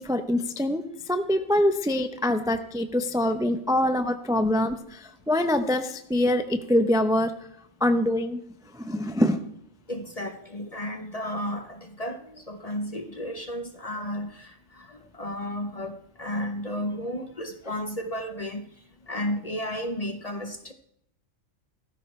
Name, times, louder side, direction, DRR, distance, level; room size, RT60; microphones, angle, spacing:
voice 1, 0.0-7.3 7.8-8.4 8.7-9.4, left 1 dB, 5° right, 0.5 m, -24 dB
voice 2, 9.9-18.7 19.1-20.7, equal, 35° left, 0.7 m, -33 dB
16.5 x 14.0 x 3.2 m
omnidirectional pair, 1.4 m